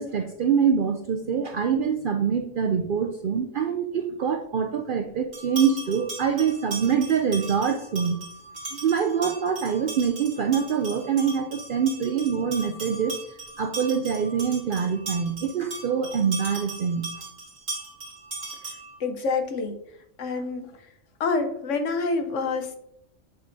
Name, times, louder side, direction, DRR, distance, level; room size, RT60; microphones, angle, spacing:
voice 1, 0.0-8.2 8.7-13.2 13.6-17.1, right 7 dB, 65° right, 6 dB, 0.5 m, -25 dB
sound 1, 5.3-19.0, right 2 dB, 80° right, 2.5 m, -38 dB
voice 2, 19.0-19.8 20.2-20.7 21.2-22.8, left 4 dB, 75° left, 7 dB, 1.2 m, -27 dB
7.9 x 5.0 x 2.6 m, 0.75 s
omnidirectional pair, 1.3 m